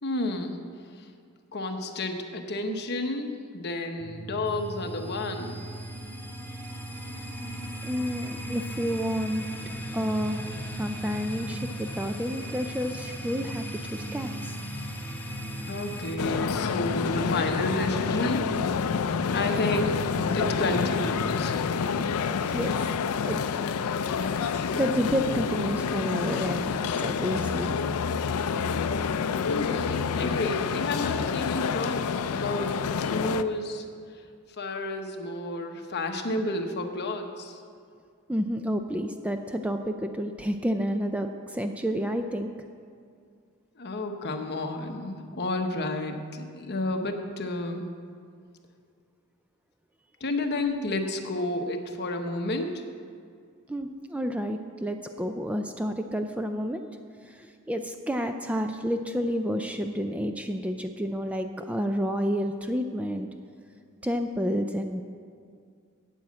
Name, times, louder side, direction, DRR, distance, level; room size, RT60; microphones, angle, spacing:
voice 1, 0.0-0.6 0.9-1.1 1.5-5.6 15.7-18.4 19.3-20.0 20.3-21.7 29.5-33.8 34.6-37.6 43.8-47.9 50.2-52.8, left 2 dB, 50° left, 5 dB, 1.0 m, -31 dB
sound 1, 4.0-21.9, right 2 dB, 65° right, 1.0 m, -40 dB
sound 2, 4.5-16.2, left 1 dB, 10° left, 0.8 m, -39 dB
voice 2, 7.8-9.4 9.9-10.4 10.8-13.6 13.9-14.5 22.5-22.9 23.2-23.4 24.2-27.8 38.3-42.5 53.7-56.8 57.2-63.3 64.0-65.0, equal, 5° right, 6 dB, 0.4 m, -30 dB
sound 3, 16.2-33.4, left 6 dB, 80° left, 0.4 m, -28 dB
9.1 x 8.5 x 7.5 m, 2.2 s
head